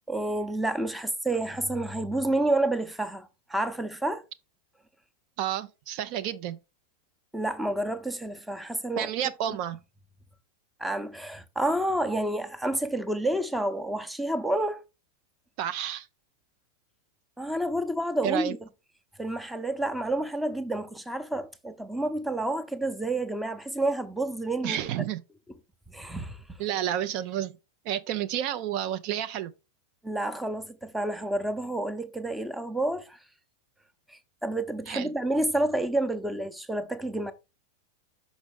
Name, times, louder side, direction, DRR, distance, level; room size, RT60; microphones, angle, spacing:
voice 1, 0.1-4.2 7.3-9.1 9.5-9.6 10.8-14.8 17.4-18.6 19.2-24.8 25.9-26.4 30.0-33.2 34.1-37.3, right 1 dB, 5° right, 0.7 m, -29 dB
voice 2, 5.4-6.6 9.0-9.8 15.6-16.1 18.2-18.5 24.6-25.2 26.6-27.5 27.9-29.5 34.9-35.1, right 11 dB, 45° right, 0.5 m, -30 dB
6.1 x 5.1 x 3.5 m
figure-of-eight pair, 90°, 0 cm